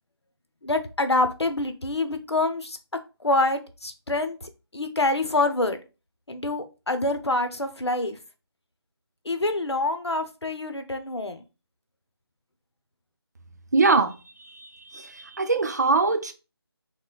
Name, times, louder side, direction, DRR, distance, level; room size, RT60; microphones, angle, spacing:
voice 1, 0.6-2.8 3.2-5.8 6.3-8.2 9.3-11.4, left 2 dB, 85° left, 0.7 m, -26 dB
voice 2, 13.7-14.1 14.9-16.3, right 3 dB, 40° right, 0.5 m, -22 dB
6.0 x 2.2 x 2.2 m
figure-of-eight pair, 160°, 14 cm